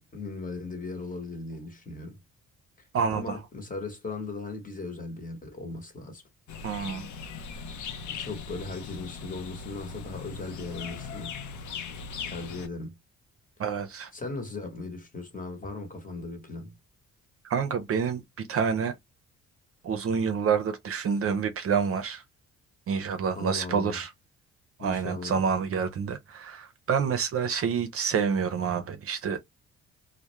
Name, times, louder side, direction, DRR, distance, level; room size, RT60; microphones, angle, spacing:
voice 1, 0.0-2.2 2.8-6.2 8.1-11.4 12.3-13.0 14.1-16.7 23.4-24.0 24.8-25.4, left 3 dB, 25° left, 1.0 m, -38 dB
sound 1, 6.5-12.7, left 6 dB, 75° left, 0.6 m, -39 dB
voice 2, 6.6-7.1 13.6-14.1 17.4-18.9 19.8-22.2 22.9-24.1 24.8-29.4, right 6 dB, 50° right, 0.5 m, -28 dB
2.3 x 2.1 x 2.9 m
cardioid pair, 90°, 30 cm